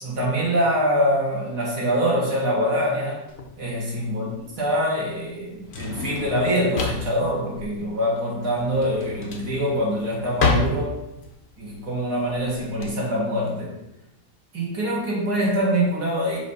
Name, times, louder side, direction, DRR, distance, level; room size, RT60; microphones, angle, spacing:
voice 1, 0.0-3.2 3.6-4.3 4.6-11.0 11.6-13.8 14.5-16.4, equal, 70° right, -4 dB, 2.3 m, -24 dB
Drawer open or close, 3.3-12.9, left 4 dB, 50° left, 0.8 m, -30 dB
6.2 x 2.8 x 5.4 m, 0.91 s
omnidirectional pair, 1.8 m